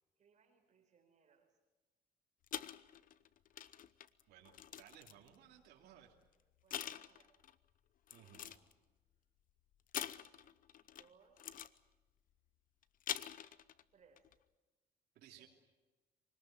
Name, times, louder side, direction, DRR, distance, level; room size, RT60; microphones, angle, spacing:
voice 1, 0.2-1.5 6.6-7.4 8.2-8.6 10.8-11.5 13.9-14.3 15.4-15.5, right 5 dB, 45° right, 4 dB, 4.3 m, -70 dB
sound 1, 2.5-5.4 6.1-6.3 6.7-7.6 8.1-8.7 9.9-11.1 11.4-11.8 12.8-13.8 14.2-14.3, left 10 dB, 55° left, 0.9 m, -45 dB
voice 2, 4.3-6.1 8.1-8.4 15.1-15.5, right 10 dB, 75° right, 0 dB, 2.8 m, -60 dB
24.5 x 19.0 x 9.1 m, 1.1 s
cardioid pair, 110°, 17 cm